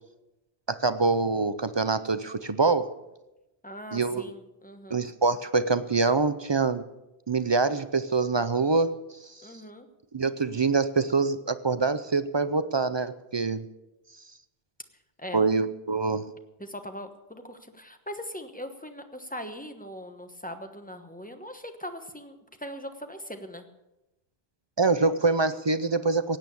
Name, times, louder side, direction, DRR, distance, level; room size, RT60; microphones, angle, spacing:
voice 1, 0.7-3.0 3.9-4.3 4.9-6.8 7.3-9.0 10.1-13.7 15.3-16.3 24.8-26.4, right 4 dB, 45° right, 13 dB, 0.3 m, -25 dB
voice 2, 3.6-5.0 9.4-9.9 15.2-15.4 16.6-23.7, equal, 10° left, 7 dB, 1.1 m, -40 dB
16.5 x 9.1 x 7.0 m, 0.97 s
omnidirectional pair, 1.1 m